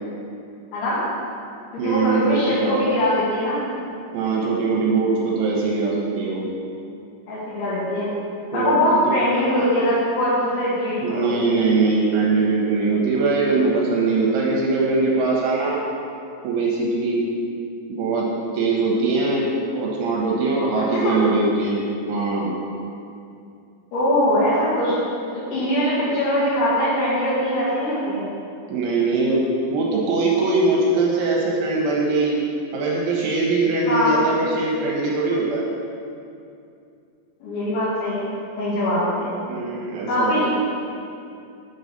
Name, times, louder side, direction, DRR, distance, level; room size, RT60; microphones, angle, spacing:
voice 1, 0.7-1.1 1.7-3.6 7.3-8.1 8.5-11.3 20.8-21.1 23.9-25.0 25.5-28.3 33.9-34.1 37.4-38.3 38.6-39.0 40.1-40.5, left 1 dB, 70° left, -11 dB, 4.1 m, -22 dB
voice 2, 1.8-2.8 4.1-6.5 8.5-8.8 9.1-9.2 11.0-15.8 16.4-17.2 17.9-18.3 18.5-22.5 28.7-32.4 32.7-35.6 39.1-40.5, right 3 dB, 75° right, -3 dB, 3.1 m, -21 dB
8.2 x 3.9 x 6.5 m, 2.5 s
omnidirectional pair, 5.8 m